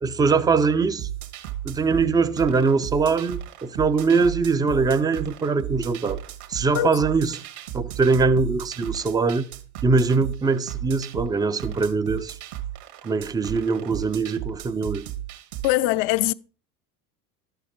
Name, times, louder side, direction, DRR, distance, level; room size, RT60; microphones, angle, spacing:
voice 1, 0.0-1.1 1.6-6.2 6.5-7.4 7.7-9.4 9.8-12.4 13.0-15.0, right 4 dB, 10° right, 0.3 m, -22 dB
sound 1, 1.0-15.8, right 12 dB, 65° right, 1.7 m, -35 dB
voice 2, 15.6-16.3, left 16 dB, 50° left, 0.5 m, -22 dB
11.5 x 6.7 x 4.3 m
hypercardioid pair, 80°, 47 cm